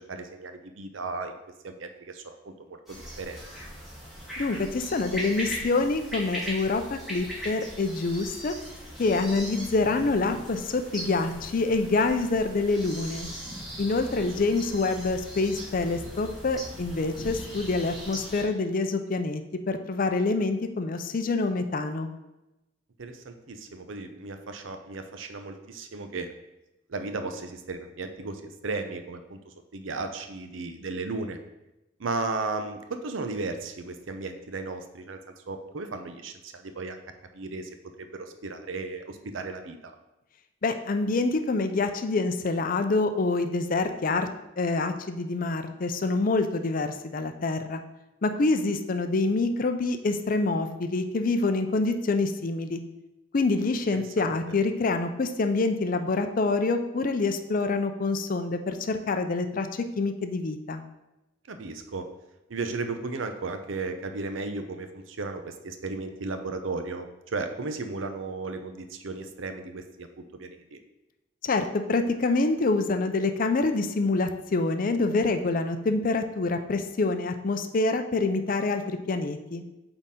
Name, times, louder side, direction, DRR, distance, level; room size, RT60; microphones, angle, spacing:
voice 1, 0.1-1.3 1.6-3.4 14.1-14.2 23.0-26.3 26.9-31.4 32.0-35.2 35.5-37.0 37.3-37.7 38.0-39.9 53.5-53.7 54.2-54.6 61.5-62.0 62.5-70.1 70.4-70.8, right 3 dB, 85° right, 7 dB, 0.7 m, -35 dB
sound 1, 2.9-18.4, equal, ahead, 2.0 m, -39 dB
voice 2, 4.4-8.6 9.0-13.3 13.8-19.4 19.7-22.1 40.6-44.3 44.6-47.8 48.2-52.8 53.3-60.8 71.4-79.6, left 3 dB, 45° left, 8 dB, 0.5 m, -26 dB
8.3 x 3.9 x 3.7 m, 0.96 s
head